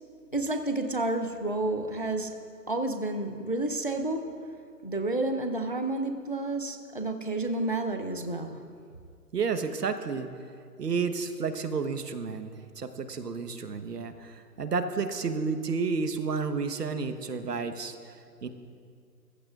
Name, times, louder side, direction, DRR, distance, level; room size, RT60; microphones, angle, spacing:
voice 1, 0.3-2.3 2.7-4.2 4.8-8.6, right 2 dB, 35° left, 6 dB, 0.5 m, -30 dB
voice 2, 9.3-10.3 10.8-18.5, right 5 dB, 70° right, 8 dB, 1.2 m, -31 dB
22.5 x 15.0 x 2.5 m, 2.3 s
hypercardioid pair, 180°, 49 cm